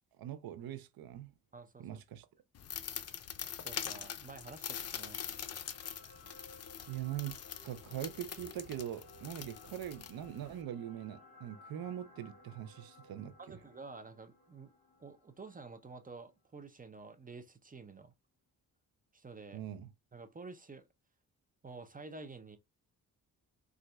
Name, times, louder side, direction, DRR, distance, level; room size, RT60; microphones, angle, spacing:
voice 1, 0.2-1.3 1.8-2.3 6.9-13.3 19.5-19.9, right 11 dB, 70° right, 0.6 m, -42 dB
voice 2, 1.5-2.0 3.6-5.4 13.4-14.7 15.0-18.1 19.1-19.6 20.1-20.9 21.6-22.6, right 3 dB, 25° right, 0.6 m, -50 dB
sound 1, 2.5-10.6, left 9 dB, 45° left, 0.5 m, -44 dB
sound 2, 4.3-16.6 17.0-17.1, left 1 dB, 20° left, 1.4 m, -60 dB
3.9 x 2.5 x 2.2 m
supercardioid pair, 60°, 37 cm